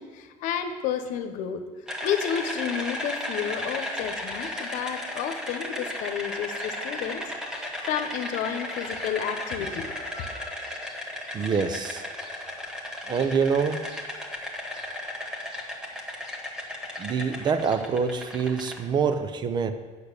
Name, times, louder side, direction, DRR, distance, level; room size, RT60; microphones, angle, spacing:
voice 1, 0.0-1.6 2.0-10.7 12.4-12.7, left 8 dB, 75° left, 8 dB, 1.0 m, -31 dB
sound 1, 1.9-18.8, left 1 dB, 5° right, 1.3 m, -35 dB
voice 2, 11.3-12.1 13.1-13.8 17.0-19.7, right 6 dB, 35° right, 10 dB, 0.7 m, -25 dB
8.5 x 6.7 x 6.8 m, 1.5 s
cardioid pair, 140°, 13 cm